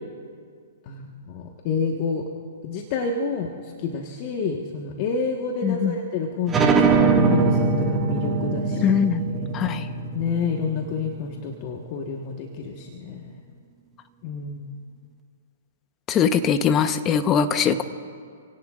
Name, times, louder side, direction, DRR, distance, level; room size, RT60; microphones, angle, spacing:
voice 1, 0.9-2.3 2.6-3.5 3.8-8.9 10.1-13.4 14.2-14.7, left 4 dB, 45° left, 1 dB, 1.5 m, -29 dB
voice 2, 5.6-5.9 8.8-9.2 9.5-9.8 16.1-17.8, left 7 dB, 25° left, 9 dB, 1.0 m, -21 dB
sound 1, 6.5-11.8, right 4 dB, 20° right, 2.0 m, -22 dB
28.5 x 17.5 x 2.5 m, 2.1 s
hypercardioid pair, 120°, 0 cm